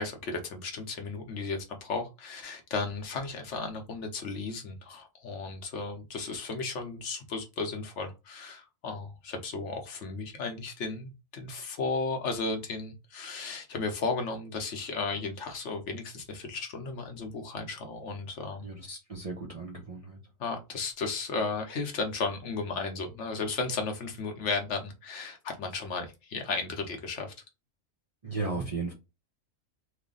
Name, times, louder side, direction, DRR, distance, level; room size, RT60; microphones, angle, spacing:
voice 1, 0.0-18.7 20.4-27.3, left 4 dB, 65° left, 1.0 m, -34 dB
voice 2, 18.6-20.2 28.2-28.9, right 3 dB, 40° right, 0.5 m, -35 dB
3.2 x 2.1 x 3.7 m
omnidirectional pair, 1.4 m